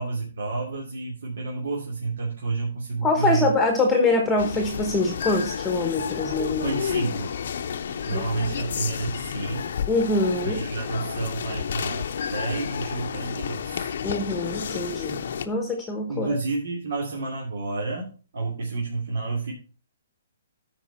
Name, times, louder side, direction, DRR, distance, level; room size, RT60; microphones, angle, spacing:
voice 1, 0.0-3.5 6.4-7.4 8.1-9.8 10.4-13.9 16.1-19.5, right 3 dB, 70° right, -3 dB, 2.6 m, -30 dB
voice 2, 3.0-6.8 8.1-8.2 9.9-10.6 14.0-15.2 15.4-16.3, left 2 dB, 5° left, 3 dB, 1.1 m, -24 dB
sound 1, 4.4-15.5, left 7 dB, 60° left, 0.8 m, -31 dB
13.0 x 4.8 x 4.3 m, 0.36 s
hypercardioid pair, 165°, 0 cm